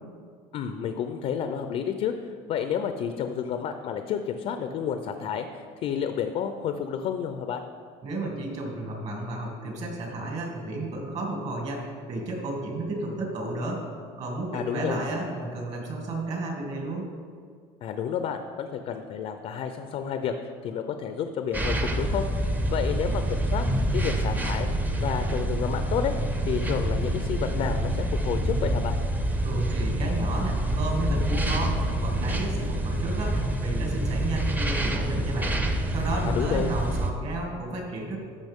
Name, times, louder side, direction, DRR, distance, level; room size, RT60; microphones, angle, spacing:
voice 1, 0.5-2.1 2.5-7.6 14.5-15.0 17.8-23.6 23.9-24.7 25.0-26.1 26.5-29.0 36.2-36.7, left 8 dB, 50° left, 7 dB, 0.5 m, -30 dB
voice 2, 8.0-13.8 14.2-17.1 29.4-35.6 35.9-38.2, right 2 dB, 50° right, -1 dB, 2.5 m, -32 dB
sound 1, 21.5-37.1, right 1 dB, 10° right, 0.7 m, -27 dB
13.5 x 5.7 x 3.6 m, 2.1 s
cardioid pair, 130°, 14 cm